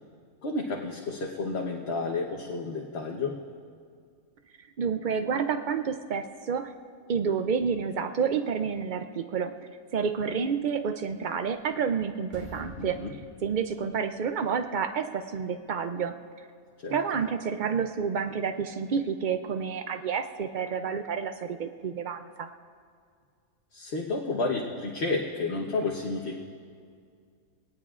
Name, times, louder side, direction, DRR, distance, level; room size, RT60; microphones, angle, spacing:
voice 1, 0.4-3.4 12.8-13.1 16.8-17.0 23.7-26.4, left 3 dB, 50° left, -1 dB, 1.2 m, -31 dB
voice 2, 4.6-6.7 7.1-9.6 9.9-13.0 13.4-16.2 16.9-22.5, right 6 dB, 85° right, 8 dB, 0.4 m, -29 dB
sound 1, 11.4-11.9 12.2-14.3, right 1 dB, 30° right, 3.3 m, -47 dB
23.5 x 18.5 x 2.4 m, 2.2 s
omnidirectional pair, 1.5 m